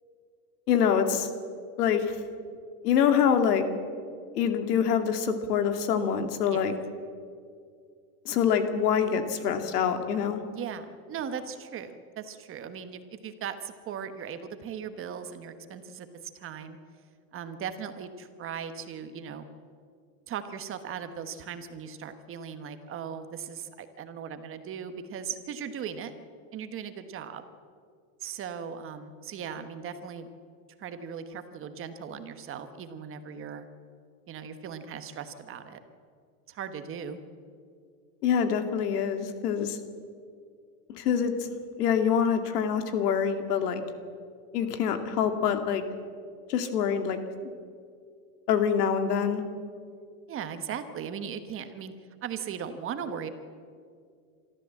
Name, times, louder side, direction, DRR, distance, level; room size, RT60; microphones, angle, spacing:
voice 1, 0.7-1.3 1.8-2.1 2.8-3.7 4.3-6.7 8.3-10.4 38.2-39.8 40.9-41.5 41.8-43.8 44.5-45.8 46.5-47.2 48.5-49.4, left 7 dB, 85° left, 8 dB, 2.2 m, -25 dB
voice 2, 10.5-16.1 16.3-16.8 17.3-19.4 20.3-26.1 26.5-27.4 28.2-30.3 30.8-33.7 34.3-35.8 36.5-37.2 50.3-51.9 52.2-53.3, right 7 dB, 30° right, 9 dB, 1.3 m, -38 dB
25.0 x 13.5 x 7.7 m, 2.2 s
supercardioid pair, 145°, 46 cm